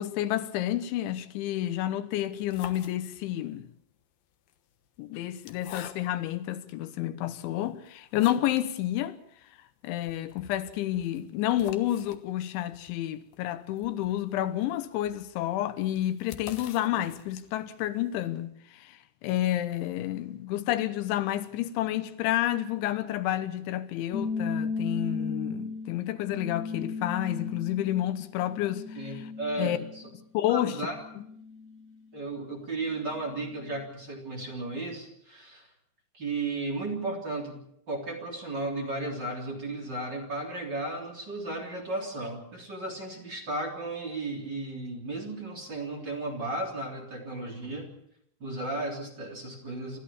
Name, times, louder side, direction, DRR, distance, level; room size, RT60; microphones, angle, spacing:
voice 1, 0.0-3.7 5.0-9.2 9.8-18.5 19.2-28.8 29.1-29.2 29.6-29.8 30.4-30.8, left 13 dB, 90° left, 3.4 m, -30 dB
sound 1, 2.3-3.5 4.3-6.4 7.0-7.1 7.6-8.7 9.0-9.1 9.4-9.5 9.9-17.7, left 10 dB, 65° left, 2.7 m, -48 dB
sound 2, 24.1-30.2 30.6-31.9, left 4 dB, 30° left, 1.8 m, -36 dB
voice 2, 29.0-30.1 30.5-31.0 32.1-35.7 36.1-37.6 37.9-47.9 48.4-50.0, right 2 dB, 25° right, 3.5 m, -34 dB
29.0 x 13.5 x 7.1 m
omnidirectional pair, 5.2 m